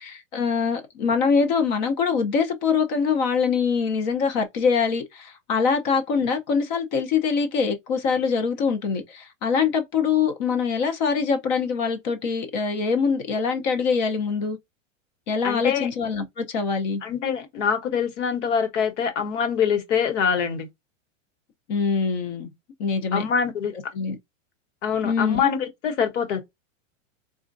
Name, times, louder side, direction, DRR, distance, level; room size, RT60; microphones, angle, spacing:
voice 1, 0.0-14.6 15.3-17.0 21.7-22.5 22.8-23.2 23.9-24.2 25.0-25.4, left 5 dB, 35° left, 0.7 m, -24 dB
voice 2, 15.4-15.9 17.0-20.7 23.1-23.7 24.8-26.4, left 7 dB, 65° left, 1.4 m, -24 dB
4.2 x 2.4 x 2.6 m
supercardioid pair, 165°, 39 cm